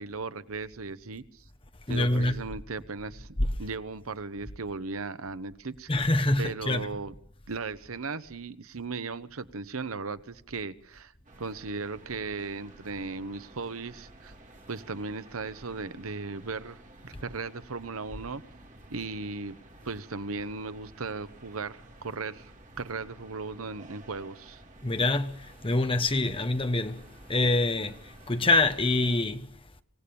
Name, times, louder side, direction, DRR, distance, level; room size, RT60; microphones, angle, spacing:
voice 1, 0.0-1.4 1.9-3.3 3.6-5.9 6.4-7.1 7.5-11.1 11.4-14.3 14.7-16.8 17.0-18.4 18.9-19.6 19.8-22.5 22.8-24.6, right 4 dB, 80° right, 1.0 m, -37 dB
voice 2, 1.9-2.5 3.4-3.5 5.9-6.9 24.8-27.0 27.3-29.5, left 2 dB, 25° left, 1.1 m, -26 dB
sound 1, 11.2-29.2, right 2 dB, 35° right, 2.5 m, -53 dB
26.0 x 17.0 x 7.0 m
head